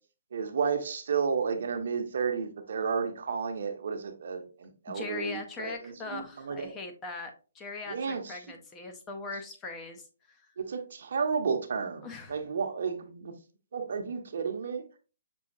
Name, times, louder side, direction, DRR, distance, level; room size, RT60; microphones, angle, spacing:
voice 1, 0.3-6.8 7.9-8.4 10.6-13.3 13.7-14.8, right 5 dB, 65° right, 0.8 m, -32 dB
voice 2, 4.9-10.5 12.0-12.4, left 3 dB, 15° left, 0.6 m, -41 dB
6.1 x 2.7 x 2.6 m
hypercardioid pair, 155°, 0 cm